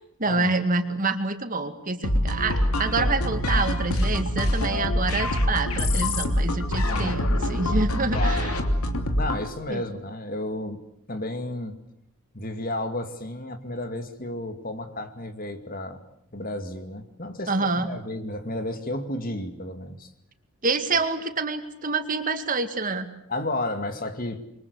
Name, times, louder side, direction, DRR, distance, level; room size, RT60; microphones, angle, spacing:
voice 1, 0.2-8.5 9.7-9.8 17.5-17.9 20.6-23.1, right 3 dB, 40° right, 8 dB, 2.2 m, -27 dB
sound 1, 2.0-9.5, left 1 dB, 85° left, 3.0 m, -24 dB
voice 2, 6.8-7.2 8.1-8.5 9.2-10.8 11.1-11.8 12.3-16.0 16.3-20.1 23.3-24.4, left 1 dB, 40° left, 8 dB, 2.4 m, -32 dB
27.5 x 24.0 x 8.2 m, 0.68 s
head